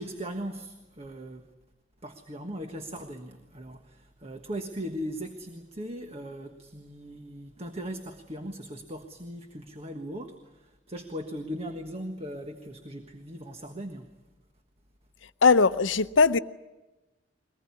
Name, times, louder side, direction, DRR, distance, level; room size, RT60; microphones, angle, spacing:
voice 1, 0.0-1.5 2.0-14.1, equal, 35° right, 1.4 m, -39 dB
voice 2, 15.4-16.4, left 4 dB, 85° left, 0.8 m, -20 dB
22.5 x 19.5 x 9.7 m
head